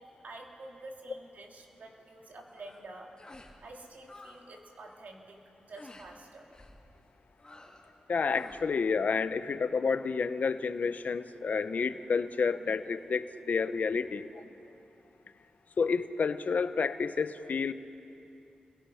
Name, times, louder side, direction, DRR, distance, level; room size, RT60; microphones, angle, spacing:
voice 1, 0.2-3.1 3.6-6.5, right 2 dB, 70° right, 0 dB, 3.0 m, -48 dB
sound 1, 2.5-2.8 3.2-3.6 3.8-4.4 4.7-5.0 5.7-6.1 6.5-6.8 7.4-7.9 8.2-8.7, left 2 dB, 30° left, 3.1 m, -52 dB
voice 2, 8.1-14.4 15.8-17.7, left 5 dB, 65° left, 12 dB, 0.8 m, -30 dB
29.5 x 22.0 x 5.7 m, 2.6 s
cardioid pair, 75°, 3 cm